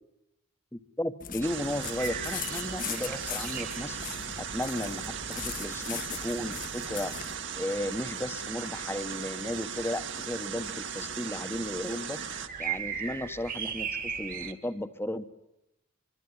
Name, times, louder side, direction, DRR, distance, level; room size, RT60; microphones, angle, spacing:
voice 1, 0.7-7.3 7.5-12.2 12.6-15.3, left 1 dB, 10° left, 11 dB, 1.1 m, -35 dB
sound 1, 1.2-7.3, left 8 dB, 45° left, 1.2 m, -40 dB
sound 2, 1.4-12.5, right 7 dB, 65° right, 1.9 m, -38 dB
sound 3, 2.0-14.5, right 7 dB, 45° right, 2.1 m, -41 dB
25.0 x 24.5 x 9.8 m, 0.86 s
head